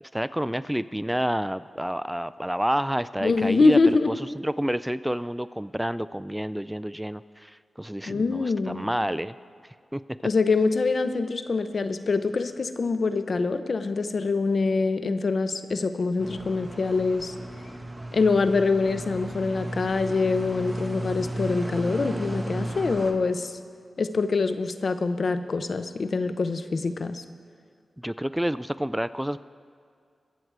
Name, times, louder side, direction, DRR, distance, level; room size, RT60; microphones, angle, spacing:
voice 1, 0.0-9.3 9.9-10.0 28.0-29.4, equal, 5° right, 15 dB, 0.3 m, -29 dB
voice 2, 3.2-4.1 8.1-8.9 10.2-17.3 18.1-23.6 24.0-27.2, left 4 dB, 60° left, 11 dB, 0.7 m, -24 dB
sound 1, 16.2-23.1, right 1 dB, 20° right, 1.6 m, -35 dB
23.0 x 7.9 x 4.7 m, 2.3 s
cardioid pair, 60°, 0 cm